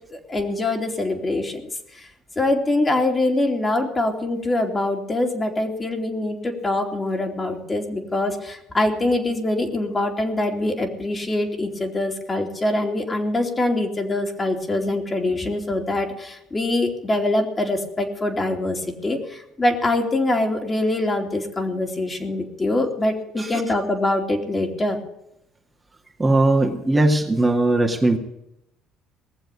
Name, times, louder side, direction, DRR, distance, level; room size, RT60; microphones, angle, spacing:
voice 1, 0.1-1.6 1.9-2.1 2.4-25.0, left 2 dB, 25° left, 3 dB, 3.0 m, -24 dB
voice 2, 26.2-28.2, right 2 dB, 20° right, 2 dB, 2.0 m, -19 dB
19.0 x 7.4 x 8.4 m, 0.83 s
supercardioid pair, 80°, 0 cm